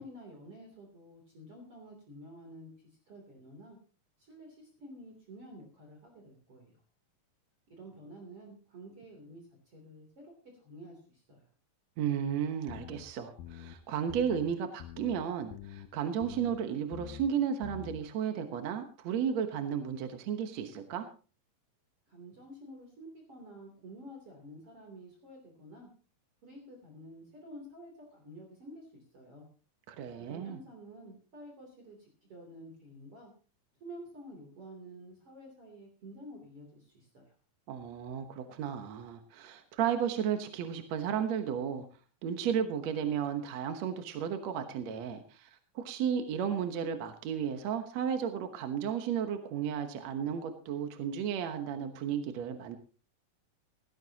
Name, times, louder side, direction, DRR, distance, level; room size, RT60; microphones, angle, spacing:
voice 1, 0.0-3.8 4.2-6.8 7.7-11.5 22.1-25.9 26.4-29.5 30.2-33.3 33.8-37.4, equal, 40° right, 1 dB, 3.9 m, -50 dB
voice 2, 12.0-21.1 29.9-30.6 37.7-41.9 42.2-45.5 45.8-52.8, right 8 dB, 60° right, 6 dB, 2.1 m, -33 dB
sound 1, 12.7-13.0 13.4-13.8 14.1-14.5 14.8-15.2 15.5-15.9 16.2-16.6 16.9-17.3 17.6-18.0, left 10 dB, 90° left, 2.7 m, -46 dB
17.5 x 15.5 x 2.9 m, 0.37 s
omnidirectional pair, 3.9 m